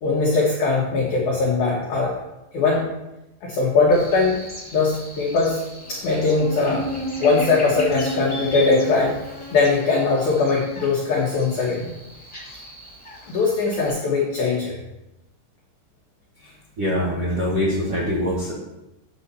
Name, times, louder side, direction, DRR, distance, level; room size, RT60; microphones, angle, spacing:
voice 1, 0.0-2.1 2.5-2.8 3.4-4.4 4.7-5.6 5.9-6.9 7.2-9.2 9.5-11.9 13.3-14.7, left 3 dB, 80° left, -3 dB, 1.7 m, -20 dB
Buzz, 3.9-13.9, equal, 5° left, 1.0 m, -34 dB
voice 2, 16.4-18.5, equal, 70° right, -6 dB, 1.3 m, -24 dB
8.8 x 4.0 x 6.9 m, 0.94 s
omnidirectional pair, 5.4 m